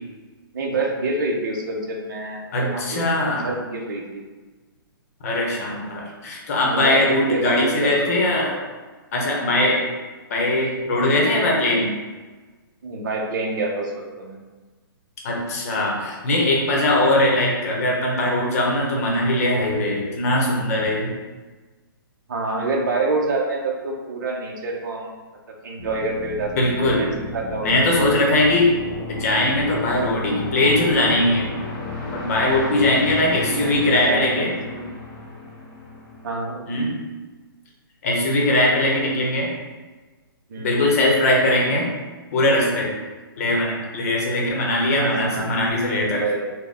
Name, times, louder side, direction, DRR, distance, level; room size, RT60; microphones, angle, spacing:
voice 1, 0.5-4.2 6.7-7.0 7.3-8.4 12.8-14.4 22.3-25.1 25.5-28.1 33.5-35.0 36.2-36.8 40.5-40.9 45.0-46.5, right 2 dB, 55° right, 0 dB, 0.7 m, -28 dB
voice 2, 2.5-3.5 5.2-8.6 9.1-9.8 10.3-11.9 15.2-21.1 26.6-27.0 27.6-28.7 29.1-31.5 32.1-34.5 36.7-37.0 38.0-39.5 40.6-41.9 42.3-42.9 43.4-46.2, left 1 dB, 40° left, -2 dB, 0.8 m, -20 dB
sound 1, 25.8-36.5, left 3 dB, 15° left, 0.4 m, -33 dB
4.0 x 2.1 x 3.4 m, 1.3 s
hypercardioid pair, 160°, 12 cm